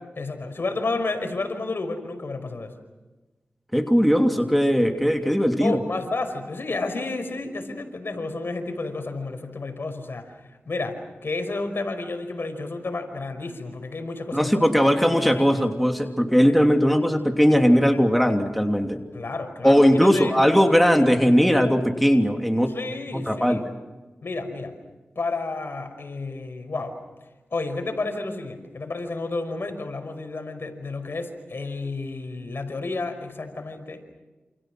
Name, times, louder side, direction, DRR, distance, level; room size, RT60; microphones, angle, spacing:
voice 1, 0.2-2.7 5.6-10.3 10.7-14.7 19.1-20.3 22.7-23.6 24.2-24.7 25.2-26.9 27.5-34.0, left 3 dB, 65° left, 6 dB, 5.2 m, -31 dB
voice 2, 3.7-5.8 14.3-19.0 19.6-22.7 23.1-23.6, equal, ahead, 3 dB, 2.9 m, -19 dB
29.0 x 28.5 x 6.2 m, 1.1 s
cardioid pair, 50°, 4 cm